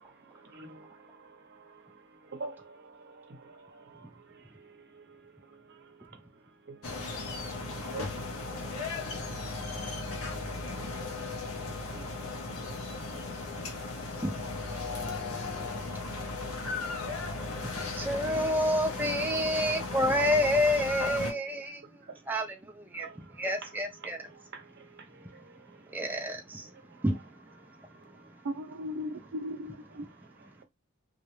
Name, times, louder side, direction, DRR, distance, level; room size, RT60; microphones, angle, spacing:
voice 1, 0.0-14.2 14.7-18.1 19.4-19.5 19.8-19.9 21.7-22.3 22.9-26.1 26.6-27.0 27.6-28.5 30.0-30.6, right 4 dB, 50° right, 0.7 m, -52 dB
sound 1, 6.8-21.3, left 3 dB, 75° left, 0.7 m, -36 dB
voice 2, 17.8-21.8 22.3-23.1 23.4-24.2 25.9-26.7 27.0-27.2, left 1 dB, 10° right, 0.3 m, -28 dB
voice 3, 28.4-30.1, equal, 85° right, 0.5 m, -37 dB
2.3 x 2.0 x 3.0 m
head